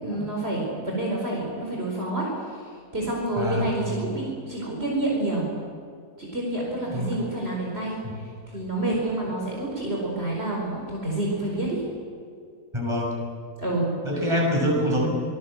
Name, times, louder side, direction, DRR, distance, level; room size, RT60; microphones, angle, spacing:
voice 1, 0.0-5.5 6.2-11.8 13.6-14.0, right 2 dB, 45° right, -3 dB, 5.0 m, -28 dB
voice 2, 3.4-3.8 6.9-7.1 8.0-8.1 12.7-13.2 14.0-15.1, equal, 20° right, -2 dB, 6.6 m, -25 dB
25.0 x 20.0 x 7.9 m, 2.2 s
omnidirectional pair, 1.5 m